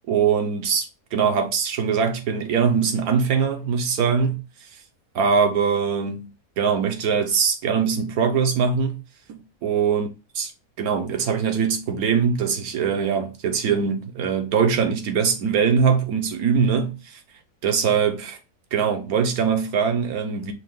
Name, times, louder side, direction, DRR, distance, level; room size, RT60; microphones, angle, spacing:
voice 1, 0.1-4.4 5.1-9.0 9.3-10.1 10.8-17.2 17.6-18.4 18.7-20.5, right 6 dB, 75° right, 1.4 m, -22 dB
5.6 x 2.4 x 3.7 m
omnidirectional pair, 1.6 m